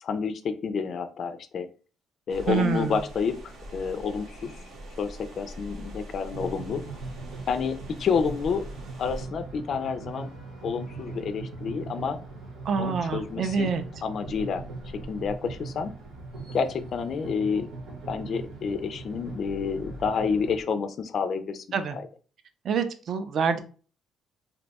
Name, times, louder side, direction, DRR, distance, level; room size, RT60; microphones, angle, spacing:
voice 1, 0.0-1.7 2.3-4.6 5.0-6.8 7.5-8.7 9.0-10.3 10.6-12.2 12.8-13.7 14.0-14.6 15.1-15.9 16.5-17.7 18.1-21.6, left 6 dB, 45° left, 0.3 m, -29 dB
sound 1, 2.3-9.3, equal, 65° right, 0.8 m, -43 dB
voice 2, 2.5-3.0 12.6-13.8 21.7-22.0 22.6-23.6, right 6 dB, 45° right, 0.4 m, -26 dB
sound 2, 6.3-20.6, right 3 dB, 80° right, 1.1 m, -40 dB
2.6 x 2.2 x 4.0 m
cardioid pair, 160°, 0 cm